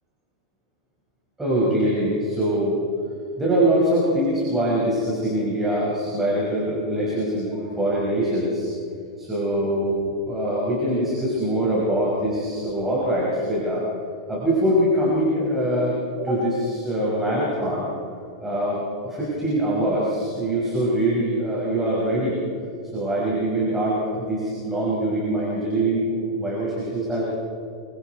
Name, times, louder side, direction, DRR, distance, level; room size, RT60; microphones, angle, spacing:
voice 1, 1.4-2.8 3.4-8.7 9.2-10.0 10.2-13.9 14.3-17.9 18.4-22.4 22.9-27.2, right 1 dB, 10° right, -6 dB, 5.5 m, -23 dB
27.5 x 25.0 x 4.6 m, 2.6 s
supercardioid pair, 155°, 3 cm